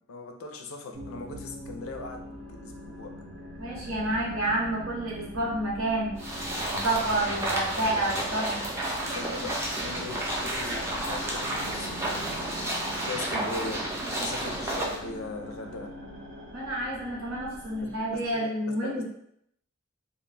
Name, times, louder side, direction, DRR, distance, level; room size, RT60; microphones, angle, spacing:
voice 1, 0.1-2.4 2.6-3.1 9.0-15.9 18.1-18.5 18.8-19.0, left 3 dB, 80° left, 3 dB, 0.4 m, -40 dB
sound 1, 0.9-18.4, equal, 55° right, 0.6 m, -43 dB
voice 2, 3.6-6.1 6.7-8.6 16.5-19.0, right 1 dB, 90° right, -4 dB, 0.9 m, -29 dB
sound 2, 6.2-15.0, right 1 dB, 15° right, 0.4 m, -31 dB
2.2 x 2.1 x 3.2 m, 0.72 s
head